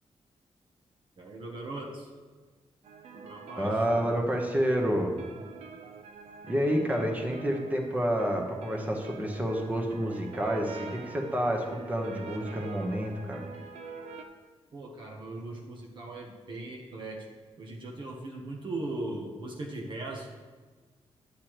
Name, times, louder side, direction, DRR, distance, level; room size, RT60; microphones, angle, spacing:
voice 1, 1.2-2.1 3.1-3.8 14.7-17.3 17.6-20.4, right 2 dB, 50° right, 0 dB, 1.0 m, -39 dB
sound 1, 2.8-14.2, right 5 dB, 90° right, 0.6 m, -46 dB
voice 2, 3.6-5.1 6.5-13.4, equal, 15° right, 1 dB, 1.0 m, -29 dB
10.0 x 8.3 x 3.1 m, 1.4 s
wide cardioid pair, 160°, 11 cm